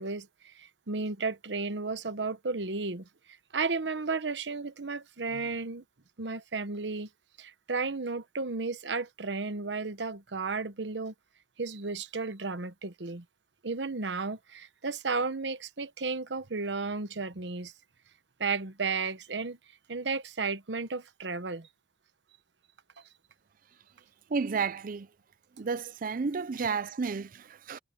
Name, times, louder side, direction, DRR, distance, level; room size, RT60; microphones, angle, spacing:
voice 1, 0.0-3.1 3.5-5.8 6.2-7.1 7.4-11.1 11.6-13.2 13.6-17.7 18.4-19.6 19.9-21.7, right 4 dB, 80° right, 1.1 m, -33 dB
voice 2, 24.3-25.1 25.6-27.8, right 5 dB, 50° right, 0.5 m, -32 dB
head